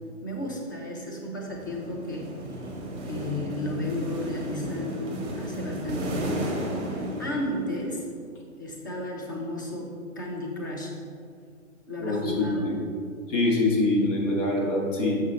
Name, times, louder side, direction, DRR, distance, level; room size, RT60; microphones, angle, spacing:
voice 1, 0.2-2.8 3.0-6.5 6.8-8.1 8.6-10.9 11.9-12.8, left 1 dB, 15° left, -1 dB, 0.3 m, -33 dB
sound 1, 1.5-8.0, right 1 dB, 15° right, 1.0 m, -34 dB
voice 2, 12.0-12.7 13.3-15.2, left 2 dB, 65° left, -2 dB, 1.7 m, -24 dB
6.3 x 5.4 x 4.0 m, 2.2 s
figure-of-eight pair, 125°, 40 cm